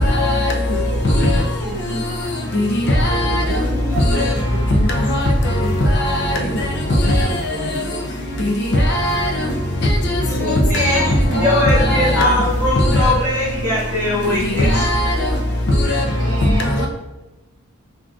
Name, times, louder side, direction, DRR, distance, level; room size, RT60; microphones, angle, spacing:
voice 1, 0.2-0.5 2.7-2.8 3.1-3.4 6.0-6.3 8.9-9.3 10.8-10.9 11.8-12.2 14.7-15.1, left 1 dB, 50° left, 0.4 m, -19 dB
sound 1, 0.6-15.4, equal, 30° right, 0.8 m, -33 dB
voice 2, 0.7-2.1 3.1-4.2 4.5-4.9 6.2-8.5 10.4-12.2 16.2-16.9, right 1 dB, 85° right, 0.7 m, -30 dB
voice 3, 3.9-4.4 10.3-14.9, left 1 dB, 10° right, 1.4 m, -21 dB
3.7 x 2.3 x 2.3 m
head